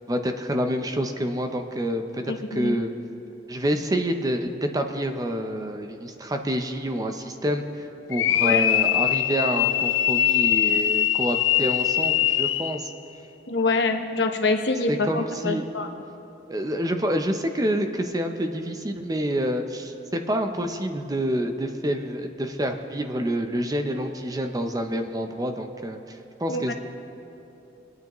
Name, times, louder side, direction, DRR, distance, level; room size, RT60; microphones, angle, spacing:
voice 1, 0.1-2.9 3.5-12.9 14.9-15.7 16.5-26.7, equal, 20° right, 6 dB, 0.6 m, -27 dB
voice 2, 2.3-2.8 8.4-8.7 13.5-15.9 26.5-26.7, left 3 dB, 65° left, 5 dB, 0.9 m, -25 dB
sound 1, 8.1-12.8, left 12 dB, 85° left, 0.4 m, -22 dB
24.0 x 9.3 x 3.0 m, 2.9 s
head